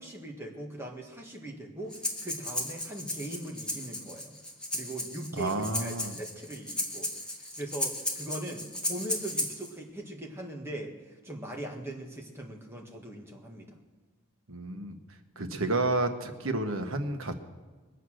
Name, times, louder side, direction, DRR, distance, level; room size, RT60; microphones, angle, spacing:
voice 1, 0.0-4.4 4.7-7.1 7.4-13.8, right 1 dB, 10° right, 0 dB, 1.8 m, -40 dB
Breathing, 1.9-9.7, left 1 dB, 5° left, 1.5 m, -35 dB
voice 2, 5.4-6.2 14.5-15.0 15.4-17.3, right 2 dB, 70° right, 6 dB, 1.4 m, -30 dB
22.0 x 8.3 x 6.4 m, 1.3 s
head